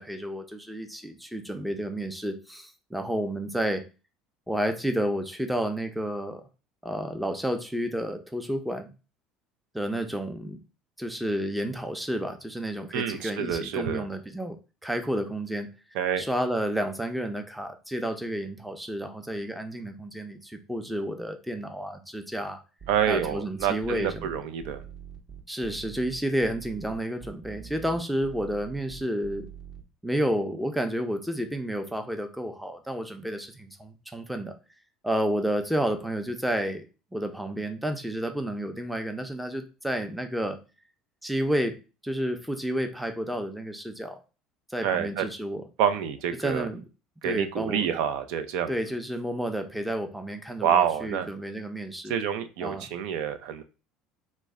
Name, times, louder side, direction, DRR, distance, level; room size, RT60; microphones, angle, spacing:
voice 1, 0.0-3.8 4.5-6.4 6.8-8.9 9.7-10.6 11.0-14.6 14.8-15.7 16.2-22.6 23.1-24.4 25.5-29.5 30.0-34.5 35.0-36.9 37.1-40.6 41.2-41.8 42.0-44.2 44.7-45.6 46.3-46.8 47.2-47.9 48.7-52.1 52.6-52.9, right 1 dB, 5° right, 6 dB, 0.5 m, -31 dB
voice 2, 12.9-14.1 15.9-16.2 22.9-24.8 44.8-45.3 45.8-46.7 47.2-48.8 50.6-51.3 52.1-53.6, right 8 dB, 75° right, 9 dB, 0.4 m, -27 dB
sound 1, 22.8-29.8, right 8 dB, 45° right, 0.7 m, -44 dB
3.0 x 2.1 x 3.5 m, 0.32 s
supercardioid pair, 95°, 0 cm